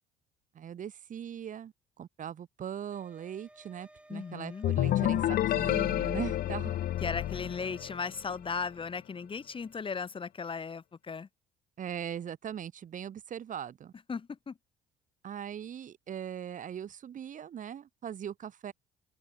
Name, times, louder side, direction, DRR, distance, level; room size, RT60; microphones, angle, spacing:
voice 1, 0.5-6.8 11.8-13.9 15.2-18.7, right 9 dB, 50° right, 5.3 m, -40 dB
sound 1, 2.9-8.0, right 1 dB, 5° right, 7.9 m, -57 dB
voice 2, 4.1-4.7 7.0-11.3 14.1-14.6, left 5 dB, 30° left, 6.2 m, -37 dB
sound 2, 4.6-8.3, left 13 dB, 65° left, 1.3 m, -29 dB
open air
cardioid pair, 110°, 17 cm